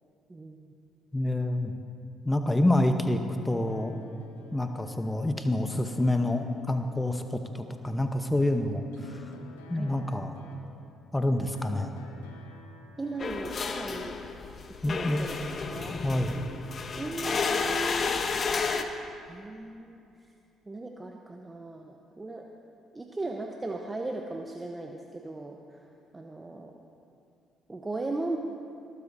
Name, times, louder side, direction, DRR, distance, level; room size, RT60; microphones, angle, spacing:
voice 1, 1.1-1.7 2.2-3.9 4.5-9.2 9.7-10.3 11.1-11.9 14.8-15.3 16.0-16.4, left 1 dB, 15° left, 6 dB, 1.0 m, -27 dB
sound 1, 3.4-14.2, left 4 dB, 85° left, 1.2 m, -52 dB
voice 2, 13.0-14.2 14.9-16.0 17.0-18.1 19.2-20.0 20.7-22.5 22.9-25.9 26.1-26.8 27.7-28.4, right 2 dB, 20° right, 2 dB, 1.0 m, -37 dB
sound 2, 13.2-18.8, left 5 dB, 45° left, 1.0 m, -31 dB
20.5 x 13.5 x 2.8 m, 2.5 s
hypercardioid pair, 50°, 0 cm